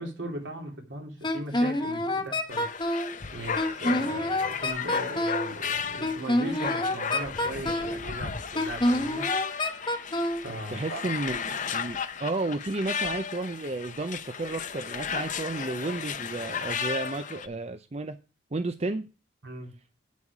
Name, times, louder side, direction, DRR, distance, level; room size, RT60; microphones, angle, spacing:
voice 1, 0.0-2.7 3.3-9.3 10.4-11.1 19.4-19.7, right 1 dB, 70° right, 2.9 m, -38 dB
Wind instrument woodwind instrument, 1.2-3.1 3.6-5.5 6.0-8.0 8.5-10.4, left 1 dB, 25° left, 1.1 m, -27 dB
sound 1, 2.5-17.5, left 6 dB, 40° left, 0.8 m, -34 dB
voice 2, 10.7-18.2 18.5-19.0, right 2 dB, 35° right, 0.5 m, -32 dB
9.0 x 8.3 x 4.8 m
head